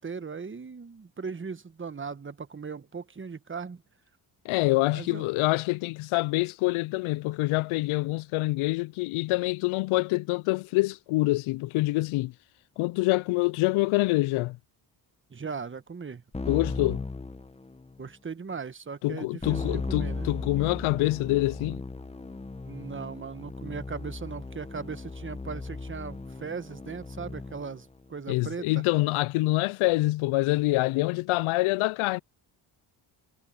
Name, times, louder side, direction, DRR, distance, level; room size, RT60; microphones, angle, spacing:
voice 1, 0.0-3.8 4.9-5.3 15.3-16.2 18.0-20.3 22.7-28.8, right 5 dB, 25° right, 1.3 m, -38 dB
voice 2, 4.4-12.3 12.8-14.6 16.5-17.0 19.0-21.8 28.3-32.2, left 20 dB, 80° left, 0.6 m, -26 dB
Keyboard (musical), 16.3-18.0 19.4-27.8, left 3 dB, 15° left, 1.0 m, -37 dB
supercardioid pair, 65°, 48 cm